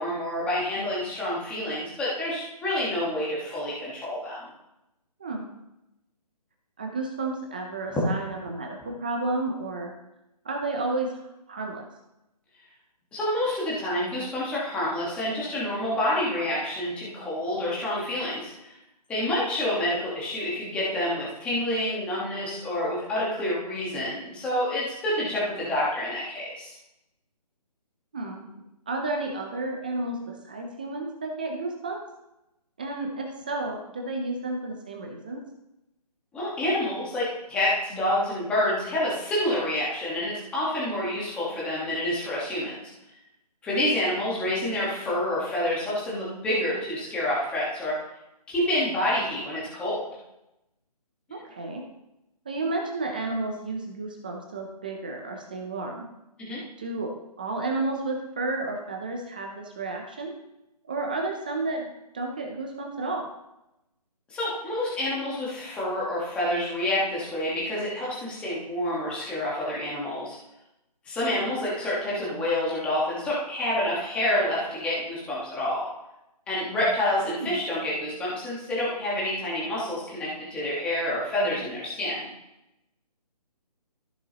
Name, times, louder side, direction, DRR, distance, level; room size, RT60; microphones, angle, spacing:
voice 1, 0.0-4.5 7.9-8.0 13.1-18.8 19.1-26.7 36.3-42.9 43.6-48.0 48.5-50.1 56.4-56.6 64.3-70.4 71.0-75.9 76.5-82.3, left 1 dB, 5° left, -7 dB, 1.4 m, -28 dB
voice 2, 6.8-9.9 10.4-11.2 11.5-11.8 28.1-28.5 28.9-32.0 32.8-35.4 51.3-51.8 52.5-56.1 56.8-57.1 57.4-60.3 60.8-61.9 62.1-63.3 77.3-77.6, right 2 dB, 15° right, 1 dB, 0.5 m, -31 dB
14.0 x 6.7 x 2.9 m, 0.90 s
hypercardioid pair, 165°, 21 cm